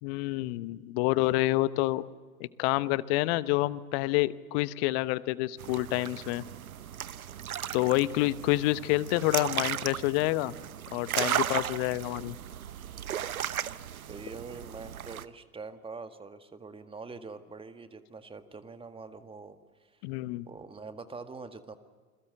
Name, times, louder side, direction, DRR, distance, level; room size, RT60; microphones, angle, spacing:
voice 1, 0.0-2.0 2.4-6.4 7.7-10.5 10.9-12.3 20.0-20.5, left 18 dB, 45° left, 17 dB, 1.0 m, -28 dB
sound 1, 5.6-15.3, right 10 dB, 75° right, 1.0 m, -36 dB
voice 2, 14.1-20.0 20.5-21.8, right 4 dB, 10° right, 9 dB, 1.8 m, -44 dB
29.0 x 21.5 x 7.8 m, 1.5 s
figure-of-eight pair, 85°, 43 cm